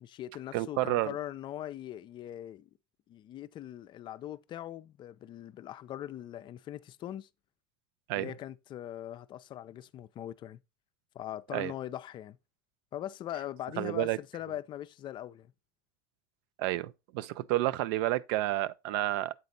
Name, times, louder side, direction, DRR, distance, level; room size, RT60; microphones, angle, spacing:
voice 1, 0.0-2.7 3.1-7.3 8.1-10.6 11.1-12.4 12.9-15.5, left 12 dB, 40° left, 0.4 m, -41 dB
voice 2, 0.5-1.1 8.1-8.3 11.5-11.7 13.8-14.2 16.6-19.3, right 16 dB, 70° right, 0.5 m, -30 dB
8.1 x 4.2 x 3.9 m
hypercardioid pair, 90°, 12 cm